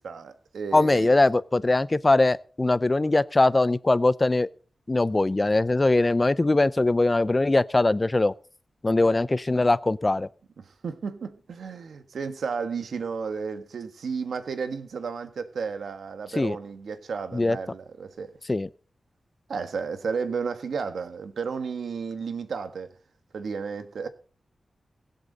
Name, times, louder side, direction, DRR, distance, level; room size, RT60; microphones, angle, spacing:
voice 1, 0.0-1.2 10.6-18.3 19.5-22.9 23.3-24.1, right 5 dB, 85° right, 1.5 m, -33 dB
voice 2, 0.7-4.5 4.9-8.3 8.8-10.3 16.4-16.6 17.3-17.6 18.5-18.7, left 2 dB, 25° left, 0.5 m, -21 dB
23.0 x 8.2 x 4.1 m
wide cardioid pair, 90°, 0 cm